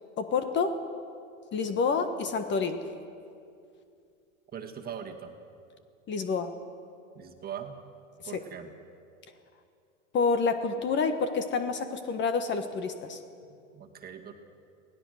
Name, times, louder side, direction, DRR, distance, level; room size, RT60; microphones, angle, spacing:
voice 1, 0.2-0.8 1.5-2.8 6.1-6.5 10.1-13.2, left 4 dB, 30° left, 8 dB, 1.4 m, -28 dB
voice 2, 4.5-5.3 7.2-7.8 8.3-8.7 13.7-14.3, right 8 dB, 25° right, 3 dB, 1.9 m, -40 dB
24.0 x 18.0 x 6.5 m, 2.4 s
hypercardioid pair, 120°, 39 cm